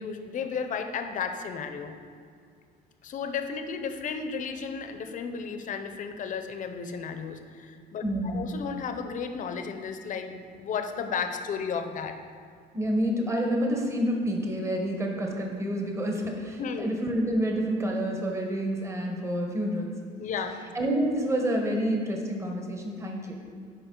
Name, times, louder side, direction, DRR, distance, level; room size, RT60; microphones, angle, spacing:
voice 1, 0.0-2.0 3.0-12.1 16.6-17.0 20.2-20.5, left 6 dB, 50° left, 7 dB, 0.7 m, -33 dB
voice 2, 8.0-8.4 12.7-19.9 20.7-23.4, equal, 15° right, 1 dB, 1.1 m, -28 dB
9.1 x 4.8 x 3.8 m, 2.2 s
cardioid pair, 110°, 17 cm